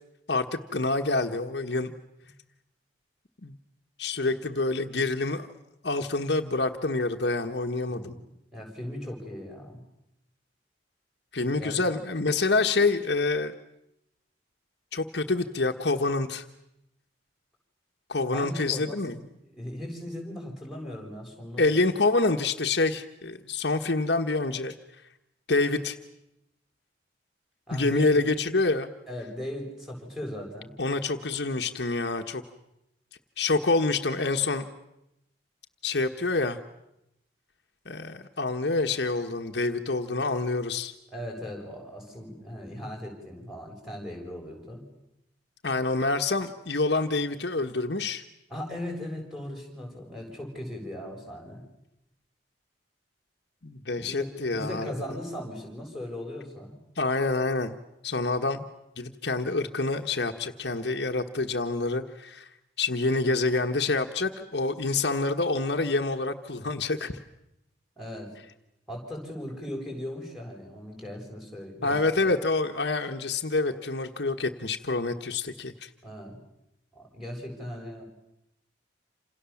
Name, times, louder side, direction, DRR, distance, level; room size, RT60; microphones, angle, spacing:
voice 1, 0.3-1.9 3.4-3.6 4.0-5.5 5.8-8.1 11.3-13.5 14.9-16.4 18.1-19.2 21.6-24.7 25.5-26.0 27.7-28.9 30.8-32.4 33.4-34.7 35.8-36.6 37.8-40.9 45.6-48.2 53.6-54.9 57.0-57.8 58.0-58.7 59.0-62.5 62.8-67.1 71.8-75.9, left 3 dB, 65° left, 4 dB, 1.3 m, -27 dB
voice 2, 7.9-8.2 8.5-9.8 11.6-11.9 18.3-19.2 19.5-21.6 27.7-28.2 29.1-30.7 41.1-44.8 48.5-51.6 53.9-54.3 54.5-56.8 68.0-68.3 68.9-72.3 76.0-76.4 76.9-78.0, left 1 dB, ahead, 1 dB, 7.3 m, -38 dB
28.0 x 27.5 x 7.2 m, 0.85 s
head